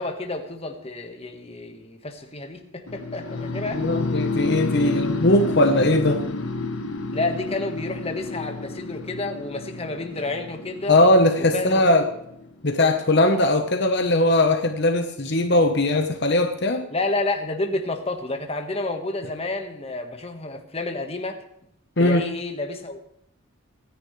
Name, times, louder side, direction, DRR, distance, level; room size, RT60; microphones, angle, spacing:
voice 1, 0.0-3.8 5.8-5.9 7.1-11.0 11.5-12.0 16.9-21.4 22.0-23.0, left 2 dB, 30° left, 5 dB, 1.5 m, -30 dB
sound 1, 2.9-12.8, left 3 dB, 75° left, 1.2 m, -30 dB
voice 2, 3.8-6.2 10.9-12.1 12.6-16.8 22.0-22.2, left 1 dB, 55° left, 6 dB, 1.1 m, -19 dB
24.5 x 10.5 x 3.3 m, 0.78 s
head